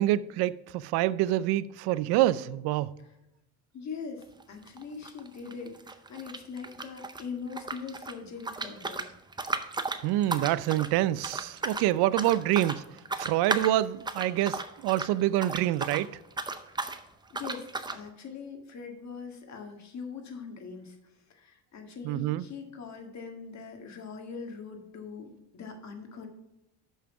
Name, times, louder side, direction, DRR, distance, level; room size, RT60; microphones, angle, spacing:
voice 1, 0.0-2.9 10.0-12.8 13.2-16.1 22.0-22.4, right 14 dB, 80° right, 0.5 m, -26 dB
voice 2, 3.7-9.1 16.7-17.0 17.3-26.3, left 5 dB, 45° left, 1.7 m, -42 dB
sound 1, 4.2-4.4 4.7-7.2 7.5-16.1 16.3-17.0 17.3-18.0, right 3 dB, 10° right, 0.6 m, -35 dB
6.3 x 5.6 x 5.8 m
cardioid pair, 105°, 38 cm